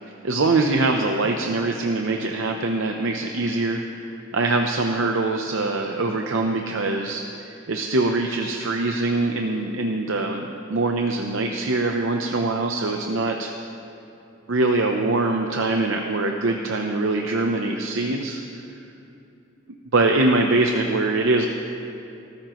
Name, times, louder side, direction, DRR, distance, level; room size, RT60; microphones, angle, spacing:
voice 1, 0.2-3.8 4.3-13.5 14.5-18.4 19.9-21.5, right 2 dB, 70° right, 3 dB, 0.7 m, -23 dB
18.5 x 14.0 x 3.1 m, 2.7 s
head